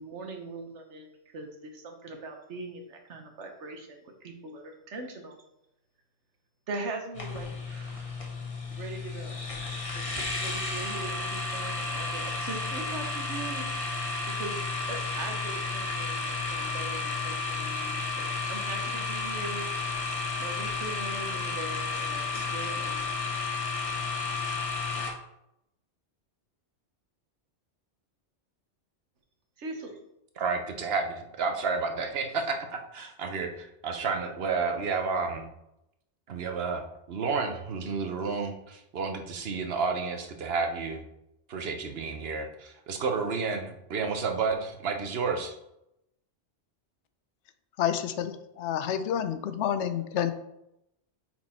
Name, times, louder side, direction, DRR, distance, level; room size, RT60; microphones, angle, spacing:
voice 1, 0.0-4.0 4.2-5.4 6.7-8.2 8.7-9.4 9.9-13.7 14.2-19.7 20.4-23.1 29.6-30.0, right 3 dB, 90° right, 4 dB, 1.3 m, -41 dB
sound 1, 7.1-25.1, left 3 dB, 30° left, 1.0 m, -32 dB
voice 2, 30.4-35.5 36.3-36.8 37.1-41.0 41.5-45.6, right 4 dB, 65° right, 5 dB, 1.0 m, -31 dB
voice 3, 47.8-50.3, left 9 dB, 85° left, 10 dB, 0.9 m, -29 dB
5.8 x 4.5 x 4.3 m, 0.84 s
omnidirectional pair, 1.2 m